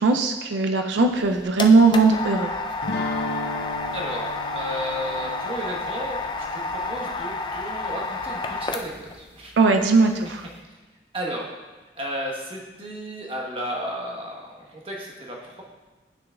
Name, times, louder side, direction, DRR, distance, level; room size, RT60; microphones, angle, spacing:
voice 1, 0.0-2.5 9.6-10.4, right 3 dB, 85° right, 5 dB, 0.4 m, -19 dB
sound 1, 1.0-9.2, left 3 dB, 25° left, 0.4 m, -30 dB
sound 2, 2.8-7.8, left 2 dB, 75° left, 0.6 m, -35 dB
voice 2, 3.9-9.5 11.1-11.4 12.0-15.6, equal, 30° right, -2 dB, 1.1 m, -33 dB
10.0 x 6.2 x 2.3 m, 1.2 s
head